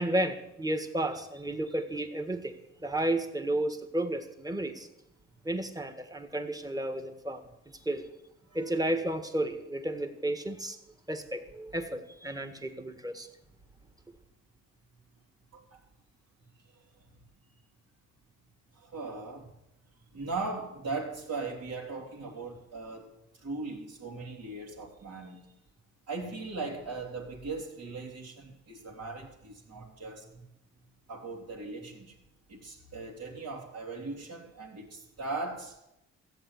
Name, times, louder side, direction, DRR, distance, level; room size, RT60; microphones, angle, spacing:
voice 1, 0.0-4.9 5.4-8.1 8.5-10.8 11.1-13.3, right 1 dB, 10° right, 8 dB, 1.7 m, -32 dB
voice 2, 18.7-19.5 20.1-25.5 26.1-30.4 31.1-32.1 32.5-35.8, right 3 dB, 60° right, -5 dB, 3.0 m, -39 dB
14.5 x 7.9 x 9.5 m, 0.87 s
cardioid pair, 90°, 30 cm